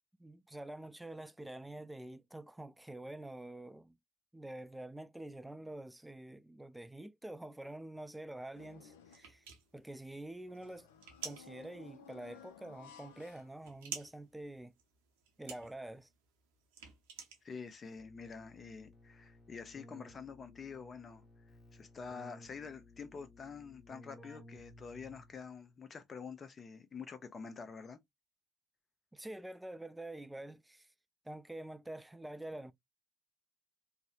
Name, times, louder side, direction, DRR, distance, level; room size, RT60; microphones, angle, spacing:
voice 1, 0.2-4.0 4.3-9.4 9.7-10.9 11.2-14.7 15.4-16.1 29.1-30.9 31.2-32.7, right 1 dB, 10° right, 0.3 m, -47 dB
sound 1, 8.5-9.4 10.5-14.1 14.5-14.6 15.7-15.8, left 7 dB, 80° left, 0.4 m, -57 dB
sound 2, 9.1-18.0, right 7 dB, 80° right, 0.6 m, -50 dB
voice 2, 17.4-21.2 21.7-28.0, left 5 dB, 40° left, 0.6 m, -47 dB
Keyboard (musical), 18.0-25.5, left 2 dB, 15° left, 1.2 m, -58 dB
2.6 x 2.0 x 2.4 m
hypercardioid pair, 55°, 0 cm